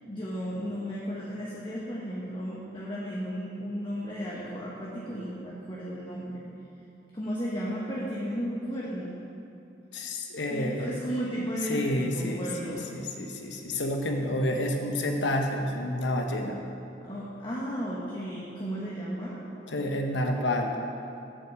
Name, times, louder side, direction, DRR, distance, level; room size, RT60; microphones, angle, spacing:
voice 1, 0.1-6.4 7.1-9.2 10.5-12.9 17.0-19.4, equal, 25° left, -6 dB, 1.0 m, -34 dB
voice 2, 9.9-10.9 11.7-16.6 19.7-20.8, left 1 dB, 85° left, 3 dB, 1.0 m, -29 dB
7.1 x 5.8 x 7.5 m, 2.7 s
head